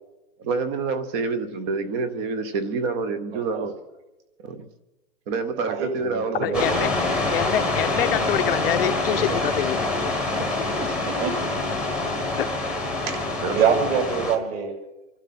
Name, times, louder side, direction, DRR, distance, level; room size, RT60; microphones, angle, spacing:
voice 1, 0.4-3.7 4.4-4.6 5.3-6.9 10.4-10.5 10.8-10.9 13.4-13.6, right 4 dB, 20° right, 12 dB, 0.8 m, -27 dB
voice 2, 3.3-3.7 5.7-6.6 9.3-9.4 11.0-11.4 13.1-14.8, right 7 dB, 45° right, 1 dB, 6.9 m, -25 dB
voice 3, 6.4-6.9 7.3-10.1 12.4-12.5, left 11 dB, 45° left, 10 dB, 0.8 m, -26 dB
sound 1, 6.5-14.4, left 2 dB, ahead, 1.3 m, -26 dB
27.5 x 12.0 x 4.2 m, 1.0 s
hypercardioid pair, 165°, 42 cm